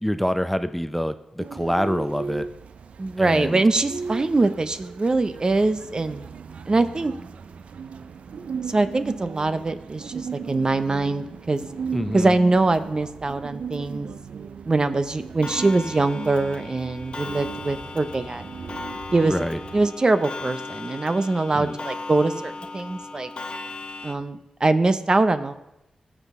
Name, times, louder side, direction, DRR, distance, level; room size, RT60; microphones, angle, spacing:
voice 1, 0.0-2.5 3.2-3.6 11.9-12.3 19.2-19.6 21.5-21.8, equal, 5° left, 10 dB, 0.5 m, -26 dB
sound 1, 1.4-19.9, right 6 dB, 75° right, 0.4 m, -37 dB
voice 2, 3.0-6.2 6.7-7.1 8.7-11.6 12.1-14.1 14.7-18.4 19.1-19.5 19.7-23.3 24.0-25.5, right 2 dB, 40° right, 11 dB, 0.6 m, -23 dB
Clock, 15.4-24.1, left 3 dB, 50° left, 0.6 m, -37 dB
16.0 x 6.0 x 3.6 m, 0.90 s
cardioid pair, 55°, 2 cm